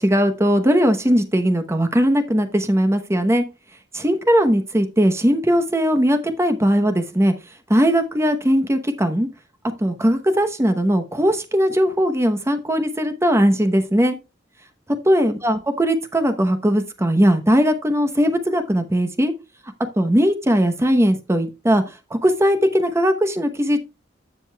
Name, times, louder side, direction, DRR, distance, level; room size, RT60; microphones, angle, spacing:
voice 1, 0.0-3.4 3.9-7.3 7.7-9.3 9.8-14.2 15.1-19.3 20.0-21.8 22.1-23.9, equal, 15° right, 0.9 m, -19 dB
15.0 x 5.3 x 2.3 m
head